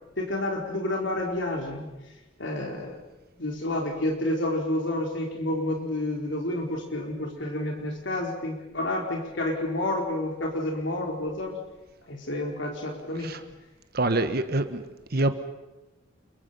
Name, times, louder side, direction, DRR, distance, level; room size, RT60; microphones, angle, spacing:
voice 1, 0.2-1.9 2.4-3.0 3.4-11.6 12.1-13.4, left 1 dB, 65° left, 1 dB, 4.2 m, -29 dB
voice 2, 13.9-14.8 15.1-15.3, right 2 dB, 50° right, 10 dB, 1.5 m, -25 dB
29.5 x 23.5 x 5.7 m, 1.1 s
head